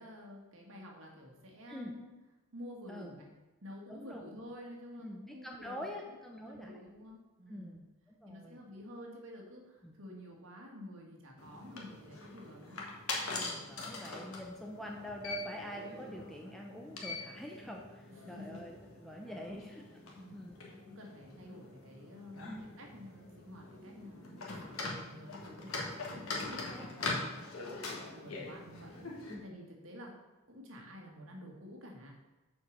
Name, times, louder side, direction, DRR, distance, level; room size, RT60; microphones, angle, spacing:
voice 1, 0.0-2.1 2.5-3.3 3.6-7.8 8.3-12.8 18.2-18.6 19.2-19.6 20.2-20.4 20.7-27.3 27.9-29.1 29.4-32.1, left 1 dB, 70° right, -1 dB, 1.9 m, -50 dB
voice 2, 3.9-4.2 5.0-6.7 7.5-7.8 8.2-8.6 9.8-9.9 13.4-19.8 20.3-20.5 22.4-22.6 26.7-27.2 29.3-29.4, equal, ahead, 0 dB, 0.6 m, -45 dB
sound 1, 11.4-29.3, left 3 dB, 80° left, 1.6 m, -43 dB
7.0 x 4.7 x 6.5 m, 1.1 s
head